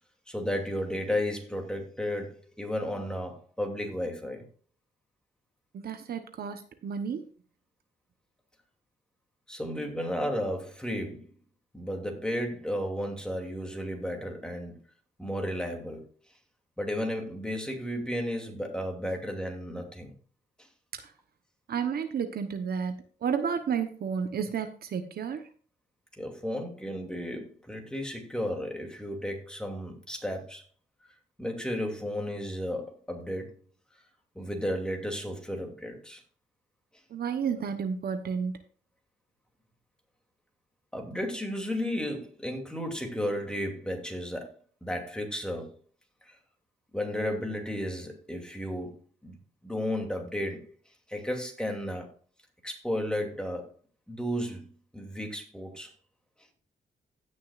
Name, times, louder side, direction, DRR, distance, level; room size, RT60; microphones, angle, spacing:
voice 1, 0.3-4.4 9.5-11.3 11.7-14.8 15.2-16.0 16.8-20.1 26.2-30.6 31.4-33.5 34.3-36.2 40.9-45.7 46.3-46.4 46.9-50.7 51.1-52.1 52.6-53.7 54.1-54.7 54.9-55.9, equal, 5° left, 2.6 m, -33 dB
voice 2, 5.7-7.2 21.0-21.1 21.7-22.9 23.2-25.5 37.1-38.5, right 7 dB, 65° right, 1.0 m, -31 dB
16.5 x 6.5 x 2.5 m
cardioid pair, 95°, 18 cm